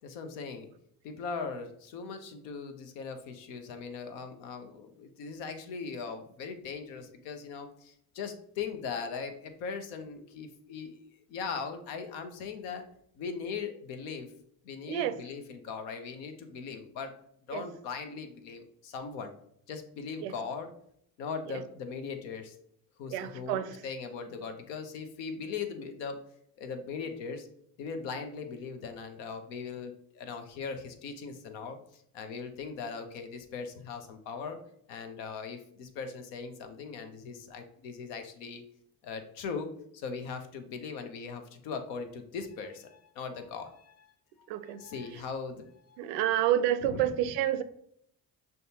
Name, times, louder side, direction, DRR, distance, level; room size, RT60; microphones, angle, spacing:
voice 1, 0.0-0.7 1.0-11.0 11.3-12.8 13.2-14.3 14.6-17.1 17.5-19.3 19.7-20.7 21.2-22.5 23.0-26.2 26.6-27.5 27.8-38.6 39.0-44.1 44.4-46.0 46.8-47.0, left 5 dB, 70° left, 7 dB, 0.7 m, -39 dB
voice 2, 23.1-23.7 44.5-44.8 46.0-47.6, right 11 dB, 65° right, 12 dB, 0.5 m, -29 dB
6.3 x 2.2 x 2.8 m, 0.70 s
hypercardioid pair, 55°, 45 cm